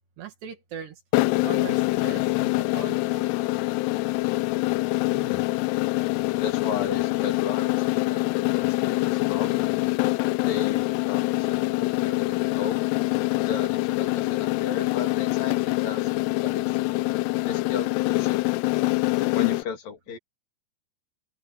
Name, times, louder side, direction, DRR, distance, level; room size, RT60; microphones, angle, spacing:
voice 1, 0.2-1.0 1.4-3.4, right 9 dB, 70° right, 4.2 m, -40 dB
sound 1, 1.1-19.6, left 21 dB, 85° left, 2.5 m, -25 dB
voice 2, 5.0-5.4 6.4-9.8 10.4-12.9 13.5-16.2 16.4-16.8 17.4-18.6 19.3-20.2, left 7 dB, 55° left, 4.0 m, -35 dB
open air
omnidirectional pair, 5.0 m